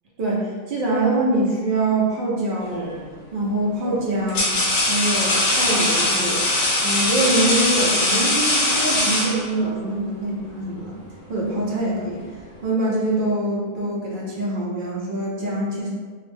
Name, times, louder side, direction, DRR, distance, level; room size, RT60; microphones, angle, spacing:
voice 1, 0.2-2.9 3.3-4.5 4.8-6.4 6.8-10.9 11.3-12.2 12.6-15.9, right 2 dB, 65° right, -5 dB, 0.5 m, -24 dB
sound 1, 2.7-3.0 3.8-9.8, left 1 dB, 65° left, 0.9 m, -21 dB
2.4 x 2.0 x 3.1 m, 1.5 s
omnidirectional pair, 1.4 m